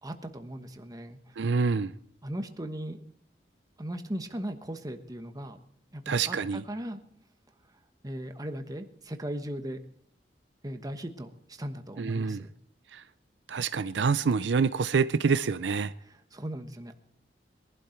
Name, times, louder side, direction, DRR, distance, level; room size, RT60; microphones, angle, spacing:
voice 1, 0.0-1.3 2.2-3.0 3.8-5.6 5.9-7.0 8.0-9.8 10.6-12.5 16.0-17.0, right 1 dB, 20° right, 1.2 m, -38 dB
voice 2, 1.4-1.9 6.1-6.6 12.0-12.4 12.9-13.0 13.5-15.9, right 5 dB, 75° right, 0.5 m, -26 dB
21.5 x 12.0 x 4.5 m
head